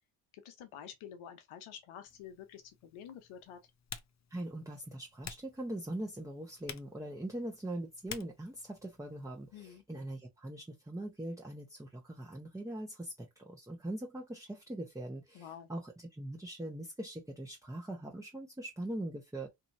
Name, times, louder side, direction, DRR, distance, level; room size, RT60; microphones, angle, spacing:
voice 1, 0.3-3.6 9.5-9.8 15.3-15.7, left 9 dB, 75° left, 0.9 m, -49 dB
Typing, 2.1-9.6, left 7 dB, 35° left, 0.6 m, -52 dB
voice 2, 4.3-19.5, right 1 dB, 5° right, 0.7 m, -42 dB
2.9 x 2.7 x 2.6 m
supercardioid pair, 50°, 50 cm